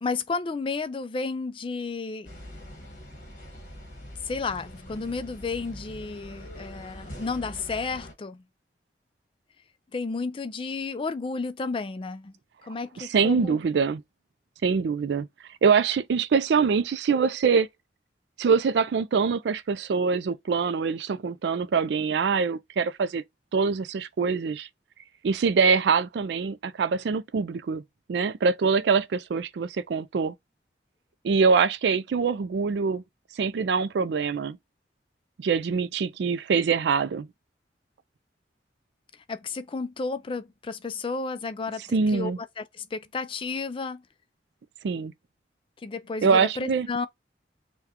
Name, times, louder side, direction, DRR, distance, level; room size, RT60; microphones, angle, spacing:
voice 1, 0.0-2.3 4.2-8.4 9.9-12.3 12.6-13.6 39.3-44.0 45.8-47.1, left 4 dB, 30° left, 0.4 m, -32 dB
sound 1, 2.2-8.1, left 1 dB, 45° left, 1.4 m, -43 dB
voice 2, 13.0-14.0 14.6-15.3 15.6-17.7 18.4-23.2 23.5-24.7 25.2-27.8 28.1-30.3 31.2-33.0 33.4-34.6 35.4-37.3 41.9-42.4 44.8-45.1 46.2-46.9, right 5 dB, 70° right, 0.4 m, -24 dB
5.7 x 2.3 x 2.8 m
head